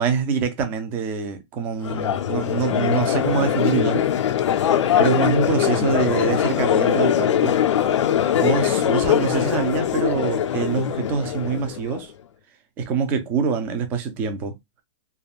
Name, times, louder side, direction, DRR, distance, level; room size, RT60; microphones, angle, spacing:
voice 1, 0.0-4.1 5.0-7.6 8.3-12.1 12.8-14.6, right 6 dB, 15° right, 0.3 m, -25 dB
Crowd, 1.8-12.0, left 10 dB, 80° left, 0.5 m, -21 dB
3.4 x 2.2 x 2.3 m
hypercardioid pair, 170°, 15 cm